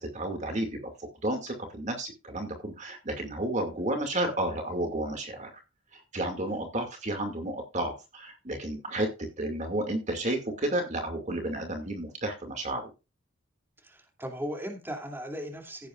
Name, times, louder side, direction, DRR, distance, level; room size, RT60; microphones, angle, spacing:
voice 1, 0.0-5.5 5.9-12.8, right 1 dB, 35° right, 4 dB, 2.3 m, -32 dB
voice 2, 13.8-15.9, equal, 10° right, 2 dB, 2.6 m, -37 dB
15.5 x 8.7 x 2.4 m, 0.28 s
head